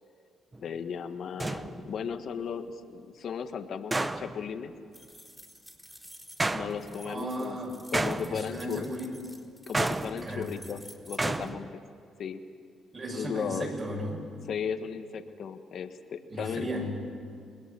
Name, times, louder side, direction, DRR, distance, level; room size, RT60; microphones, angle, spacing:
sound 1, 0.5-0.6 1.4-2.1 3.9-4.5 6.4-7.1 7.9-8.7 9.7-10.6 11.2-11.7, right 2 dB, 20° right, 0.9 m, -31 dB
voice 1, 0.6-4.7 6.5-7.6 7.9-8.9 9.7-11.8 12.2-12.4 13.1-13.7 14.5-16.7, left 7 dB, 60° left, 8 dB, 1.4 m, -36 dB
sound 2, 4.9-11.5, equal, 5° right, 4.0 m, -51 dB
voice 2, 7.0-7.8 8.3-9.2 10.2-10.5 12.9-14.3 16.3-17.0, equal, 40° right, 0 dB, 7.2 m, -35 dB
28.5 x 20.5 x 6.9 m, 2.2 s
cardioid pair, 90°, 0 cm